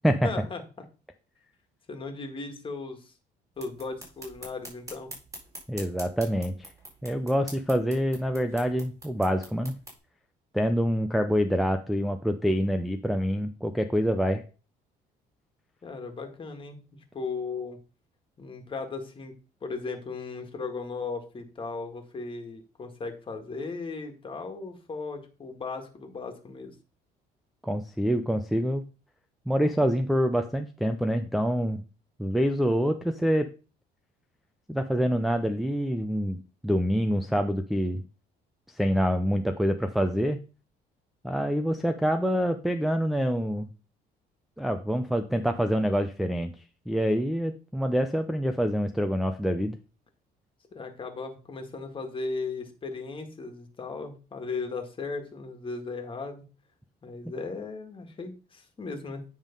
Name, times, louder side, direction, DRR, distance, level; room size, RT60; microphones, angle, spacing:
voice 1, 0.2-0.6 1.9-3.1 3.6-5.1 15.8-16.8 17.1-17.8 18.4-19.3 19.6-26.7 50.7-56.4 57.0-59.2, left 4 dB, 30° left, 5 dB, 1.9 m, -36 dB
sound 1, 3.5-10.0, right 1 dB, 20° right, 4.2 m, -46 dB
voice 2, 5.7-6.7 7.0-9.8 10.5-14.4 27.6-28.8 29.5-31.8 32.2-33.5 34.7-38.0 38.7-40.4 41.2-43.7 44.6-46.5 46.9-49.8, equal, ahead, 5 dB, 0.5 m, -26 dB
9.4 x 3.7 x 5.3 m, 0.35 s
cardioid pair, 110°, 17 cm